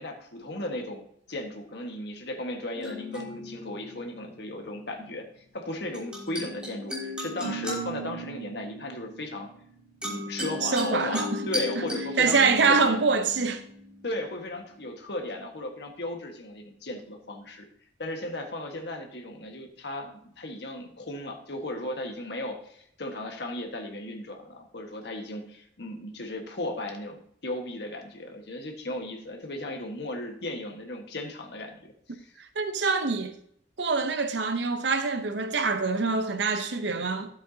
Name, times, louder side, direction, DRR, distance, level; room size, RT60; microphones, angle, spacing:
voice 1, 0.0-9.5 10.0-13.2 14.0-17.6 18.0-32.3, left 1 dB, 60° left, 1.5 m, -36 dB
sound 1, 2.8-4.5 5.9-14.4, left 1 dB, 5° right, 2.9 m, -36 dB
voice 2, 10.6-11.2 12.2-13.6 32.1-32.2 32.6-33.3 33.8-37.3, right 4 dB, 70° right, 0.7 m, -25 dB
12.5 x 7.7 x 2.8 m
head